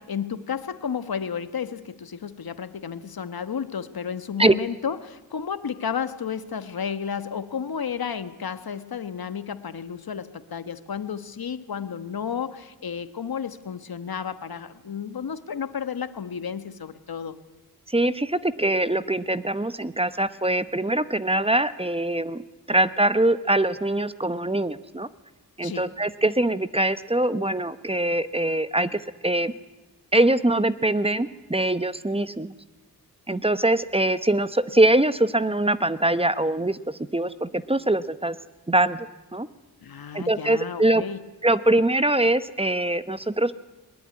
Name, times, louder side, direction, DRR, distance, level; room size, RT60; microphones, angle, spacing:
voice 1, 0.0-17.4 25.6-25.9 39.8-41.2, left 7 dB, 65° left, 12 dB, 1.3 m, -32 dB
voice 2, 17.9-22.4 22.7-25.1 25.6-29.5 30.1-32.5 33.3-38.4 38.7-39.5 40.1-41.0 41.4-43.5, right 1 dB, 15° right, 13 dB, 0.9 m, -23 dB
21.0 x 21.0 x 9.8 m, 1.1 s
wide cardioid pair, 70°, 38 cm